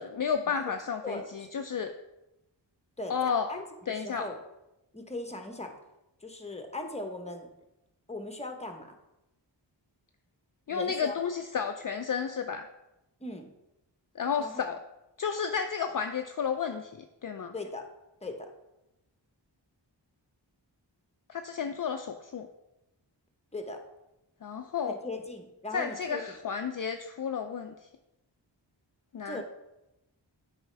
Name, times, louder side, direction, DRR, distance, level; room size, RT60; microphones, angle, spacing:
voice 1, 0.0-1.9 3.1-3.5 3.9-4.3 10.7-12.7 14.2-14.8 15.2-16.9 17.2-17.5 21.3-22.5 24.4-25.0 25.7-27.7 29.1-29.4, left 6 dB, 45° left, 6 dB, 0.5 m, -32 dB
voice 2, 1.0-1.5 3.0-4.4 4.9-5.7 6.2-7.5 8.1-8.9 10.7-11.2 13.2-13.5 14.4-14.6 17.5-17.9 18.2-18.3 23.5-23.8 24.9-26.2 29.2-29.4, left 2 dB, 15° left, 5 dB, 1.0 m, -39 dB
7.9 x 5.0 x 3.3 m, 0.92 s
wide cardioid pair, 45°, 45 cm